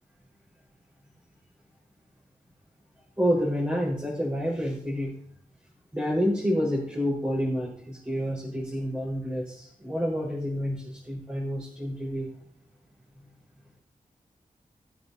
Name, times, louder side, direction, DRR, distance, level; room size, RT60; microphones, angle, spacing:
voice 1, 3.2-5.1 5.9-12.3, equal, 15° right, -7 dB, 4.4 m, -28 dB
20.5 x 9.3 x 2.7 m, 0.62 s
wide cardioid pair, 85°, 13 cm